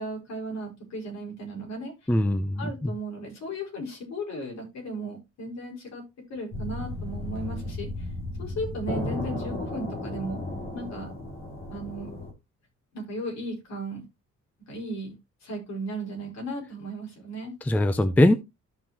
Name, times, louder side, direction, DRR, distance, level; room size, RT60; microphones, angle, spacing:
voice 1, 0.0-2.2 2.6-6.0 6.3-8.1 8.4-10.4 10.7-11.1 11.7-12.2 12.9-14.0 14.7-15.2 15.4-17.5, right 1 dB, 60° left, 5.3 m, -36 dB
voice 2, 2.1-2.9 17.7-18.3, left 1 dB, 5° left, 0.5 m, -21 dB
sound 1, 6.5-12.3, left 2 dB, 45° left, 2.8 m, -34 dB
13.5 x 5.6 x 2.9 m
cardioid pair, 180°, 30 cm